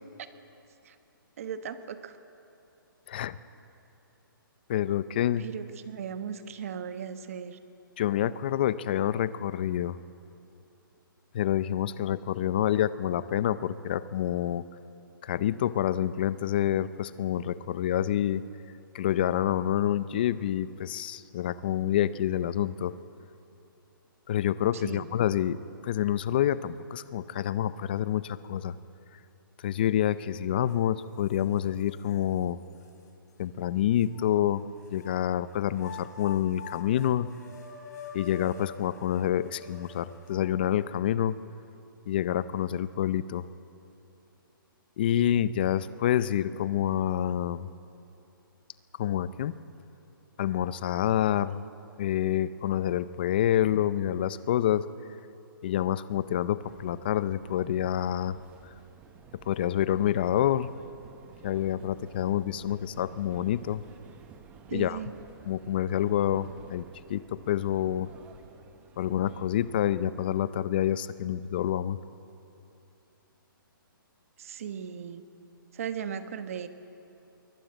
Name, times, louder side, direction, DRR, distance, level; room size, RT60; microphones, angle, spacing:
voice 1, 1.4-2.2 5.4-7.6 24.7-25.1 64.7-65.1 74.4-75.3 75.7-76.7, right 7 dB, 40° right, 9 dB, 1.3 m, -37 dB
voice 2, 4.7-5.4 8.0-10.0 11.3-14.6 15.2-18.4 18.9-22.9 24.3-25.6 25.8-28.7 29.6-32.6 33.4-34.6 34.9-37.3 38.1-41.4 42.1-43.4 45.0-47.7 49.0-49.5 50.4-51.6 52.0-54.9 55.6-58.4 59.5-60.7 61.4-63.8 64.7-65.0 65.5-66.8 67.1-68.1 69.0-72.0, left 11 dB, 25° left, 16 dB, 0.5 m, -27 dB
sound 1, 30.7-30.8 31.3-32.2 32.8-32.9 34.0-35.1 35.7-40.6, left 6 dB, 50° left, 3.8 m, -46 dB
sound 2, 56.6-70.6, right 6 dB, 10° right, 0.9 m, -53 dB
22.5 x 19.5 x 9.0 m, 2.8 s
hypercardioid pair, 170°, 12 cm